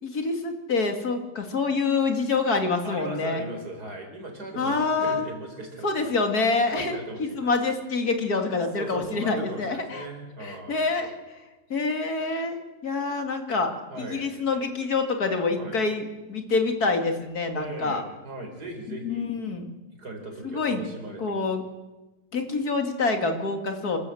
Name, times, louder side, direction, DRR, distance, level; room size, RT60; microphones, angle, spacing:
voice 1, 0.0-3.4 4.6-5.2 5.8-10.1 10.4-11.1 11.7-12.6 12.8-13.7 14.1-18.0 19.0-19.7 20.4-20.8 21.2-21.6 22.3-24.0, left 3 dB, 45° left, 5 dB, 2.6 m, -26 dB
voice 2, 2.8-6.1 6.7-7.5 8.7-10.9 13.9-14.2 15.6-15.8 17.5-19.3 19.9-21.5, right 2 dB, 45° right, 3 dB, 4.8 m, -38 dB
28.0 x 14.0 x 7.8 m, 1.1 s
omnidirectional pair, 2.4 m